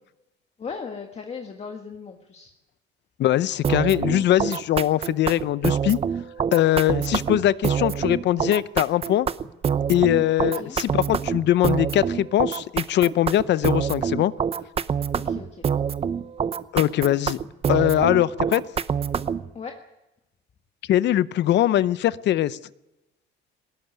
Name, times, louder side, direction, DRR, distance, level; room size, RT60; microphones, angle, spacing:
voice 1, 0.6-2.5 10.4-10.8 15.1-15.6 19.5-19.8, left 5 dB, 30° left, 1.6 m, -37 dB
voice 2, 3.2-6.0 6.5-9.3 9.9-14.3 16.7-17.4 17.7-18.6 20.9-22.6, left 13 dB, 60° left, 0.7 m, -21 dB
sound 1, 3.6-19.5, right 7 dB, 30° right, 0.7 m, -26 dB
19.5 x 17.0 x 9.3 m
cardioid pair, 130°, 20 cm